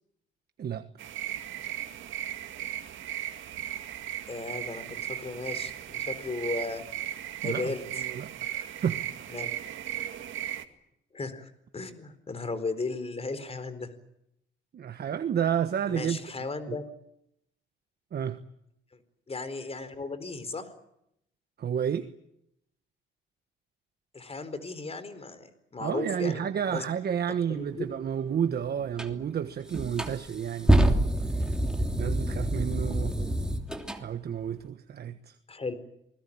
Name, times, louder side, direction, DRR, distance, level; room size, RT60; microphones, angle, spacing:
sound 1, 1.0-10.6, right 11 dB, 75° right, 2.1 m, -36 dB
voice 1, 4.3-6.8 7.4-7.8 9.3-9.5 11.1-13.9 15.9-16.9 19.3-20.7 24.1-26.8 27.5-27.9 32.9-33.3 35.5-35.7, left 3 dB, 30° left, 13 dB, 4.4 m, -36 dB
voice 2, 7.4-9.0 10.0-10.1 14.7-16.8 18.1-18.4 21.6-22.1 25.8-31.0 32.0-33.1 34.0-35.4, right 8 dB, 55° right, 9 dB, 1.4 m, -31 dB
sound 2, 29.0-29.1 29.7-34.0, right 1 dB, 5° right, 3.0 m, -26 dB
28.0 x 21.0 x 8.7 m, 0.79 s
cardioid pair, 90°, 20 cm